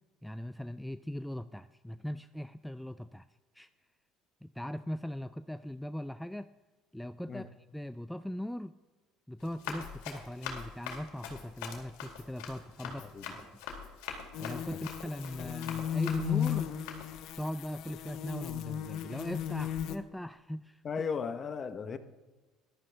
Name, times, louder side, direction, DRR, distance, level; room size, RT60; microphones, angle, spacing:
voice 1, 0.2-3.3 3.5-3.7 4.4-6.5 6.9-8.8 9.3-13.5 14.4-16.7 17.4-20.8, equal, 5° left, 11 dB, 0.3 m, -39 dB
Run, 9.4-17.3, left 7 dB, 85° left, 2.2 m, -44 dB
voice 2, 12.8-13.2 15.4-15.5 20.8-22.0, left 6 dB, 35° left, 10 dB, 0.9 m, -36 dB
sound 1, 14.3-20.0, left 10 dB, 65° left, 0.8 m, -35 dB
14.5 x 12.0 x 3.4 m, 1.2 s
supercardioid pair, 105°, 0 cm